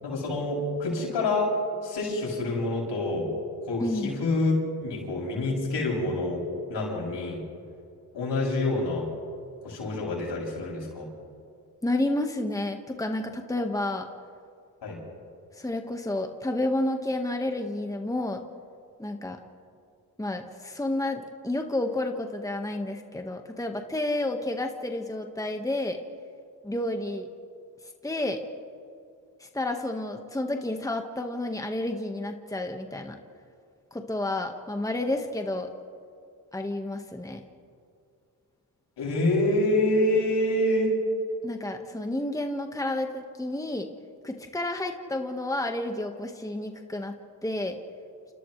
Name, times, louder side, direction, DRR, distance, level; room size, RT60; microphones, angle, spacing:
voice 1, 0.0-1.5 1.8-3.3 3.6-4.5 4.8-6.4 6.7-7.4 8.1-9.1 9.6-11.1 14.8-15.0 39.0-40.9, left 2 dB, 80° left, -2 dB, 7.5 m, -27 dB
voice 2, 3.8-4.1 11.8-14.1 15.5-18.4 19.0-19.4 20.2-26.0 26.6-27.3 28.0-28.4 29.4-33.2 33.9-35.7 36.5-37.4 41.4-43.9 44.2-47.1 47.4-47.8, left 1 dB, 10° left, 4 dB, 1.6 m, -30 dB
29.0 x 29.0 x 3.3 m, 2.4 s
cardioid pair, 75°, 42 cm